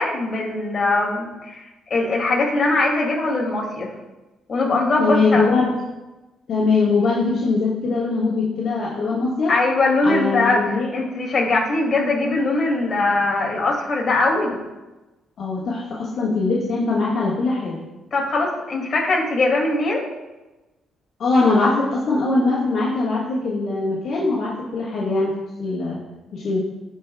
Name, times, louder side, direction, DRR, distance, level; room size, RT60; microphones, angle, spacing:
voice 1, 0.0-3.9 4.5-5.5 9.5-14.6 18.1-20.0, left 2 dB, 45° left, -1 dB, 2.3 m, -21 dB
voice 2, 5.0-5.7 6.5-9.5 10.0-10.9 15.4-17.7 21.2-25.3 25.6-26.0 26.3-26.6, left 3 dB, 65° left, -7 dB, 1.5 m, -21 dB
13.5 x 4.8 x 2.3 m, 1.1 s
cardioid pair, 90°, 0 cm